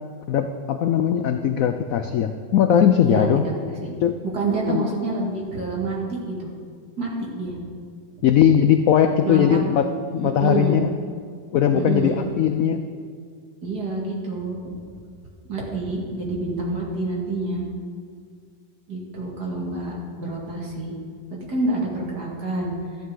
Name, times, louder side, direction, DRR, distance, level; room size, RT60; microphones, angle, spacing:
voice 1, 0.3-3.4 4.0-4.1 4.7-4.9 8.2-10.9 11.5-12.8, left 9 dB, 80° left, 8 dB, 0.7 m, -19 dB
voice 2, 3.0-3.5 3.8-3.9 4.3-6.5 7.0-7.6 9.2-9.6 10.2-10.8 11.7-12.2 13.6-14.6 15.5-17.7 18.9-20.9 21.5-22.7, right 2 dB, 60° right, -3 dB, 2.6 m, -27 dB
13.0 x 11.0 x 3.9 m, 2.1 s
omnidirectional pair, 2.0 m